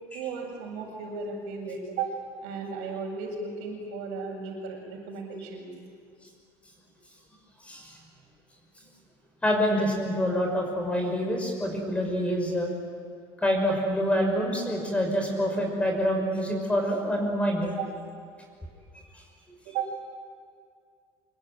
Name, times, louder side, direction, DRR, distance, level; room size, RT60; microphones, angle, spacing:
voice 1, 0.1-5.7 14.3-14.4 17.8-17.9 19.6-19.9, right 5 dB, 85° right, -6 dB, 6.8 m, -35 dB
voice 2, 9.4-12.7 13.4-17.7, equal, 10° left, 1 dB, 5.8 m, -26 dB
25.5 x 24.5 x 9.4 m, 2.2 s
cardioid pair, 130°, 11 cm